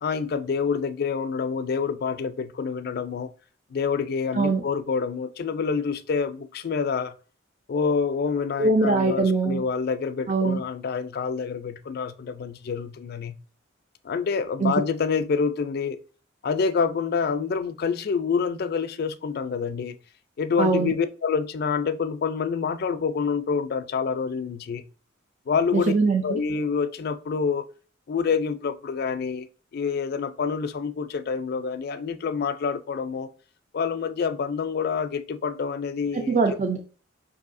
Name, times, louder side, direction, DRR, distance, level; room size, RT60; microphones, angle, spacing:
voice 1, 0.0-3.3 3.7-7.1 7.7-13.4 14.0-16.0 16.4-20.0 20.4-24.9 25.5-25.9 26.2-27.7 28.1-29.5 29.7-33.3 33.7-36.4, left 5 dB, 50° left, 0.3 m, -27 dB
voice 2, 8.6-9.6 10.3-10.6 14.6-14.7 20.6-20.9 25.7-26.4 36.1-36.8, right 3 dB, 40° right, 0.4 m, -22 dB
5.4 x 2.6 x 2.5 m
head